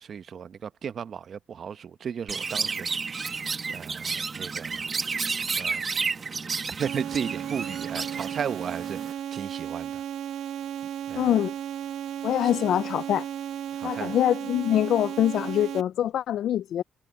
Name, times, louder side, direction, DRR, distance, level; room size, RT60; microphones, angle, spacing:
voice 1, 0.0-2.9 3.7-4.8 5.6-5.8 6.8-10.0 11.1-11.3 12.4-12.5 13.8-14.2, right 7 dB, 55° right, 0.9 m, -35 dB
Chirp tweet, 2.3-9.1, right 5 dB, 35° right, 1.4 m, -31 dB
sound 1, 6.8-15.8, right 10 dB, 80° right, 1.1 m, -34 dB
voice 2, 11.2-11.5 12.2-13.3 13.8-16.8, left 11 dB, 70° left, 0.4 m, -24 dB
cardioid pair, 95°, 0 cm